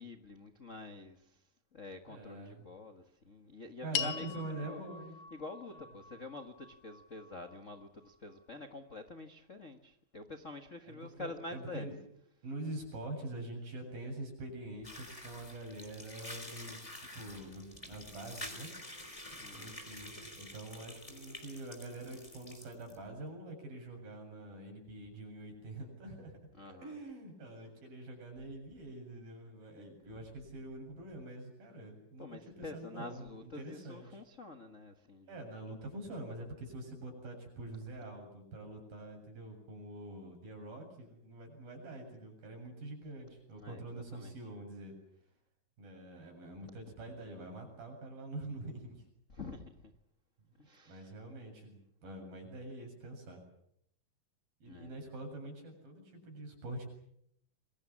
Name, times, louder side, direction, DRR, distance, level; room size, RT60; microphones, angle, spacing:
voice 1, 0.0-1.4 1.7-4.8 5.3-11.9 19.4-19.8 26.5-26.9 32.2-35.3 43.5-44.3 49.3-49.9 50.6-51.1 54.7-54.9, left 3 dB, 70° left, 7 dB, 0.7 m, -47 dB
voice 2, 2.1-2.7 3.8-5.2 5.7-5.8 10.9-12.0 12.4-18.7 19.5-26.4 26.7-34.2 35.3-45.0 45.8-49.1 50.9-53.4 54.6-56.9, right 2 dB, 75° right, 3 dB, 9.3 m, -45 dB
sound 1, 3.9-8.4, left 8 dB, 85° left, 3.5 m, -43 dB
sound 2, 14.8-23.0, left 1 dB, 10° left, 3.7 m, -48 dB
28.0 x 23.0 x 7.4 m, 0.73 s
omnidirectional pair, 4.2 m